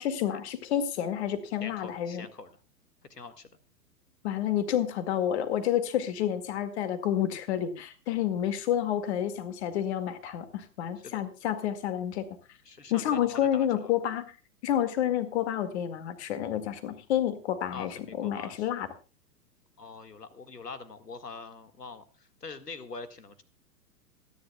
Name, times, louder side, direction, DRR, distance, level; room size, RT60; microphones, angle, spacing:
voice 1, 0.0-2.3 4.2-12.3 12.9-14.3 14.6-18.9, left 10 dB, 40° left, 11 dB, 2.0 m, -29 dB
voice 2, 1.6-2.5 3.1-3.5 11.0-11.2 12.7-13.9 17.7-18.7 19.8-23.4, left 4 dB, 80° left, 11 dB, 1.8 m, -43 dB
27.0 x 10.5 x 2.3 m, 0.31 s
figure-of-eight pair, 110°, 48 cm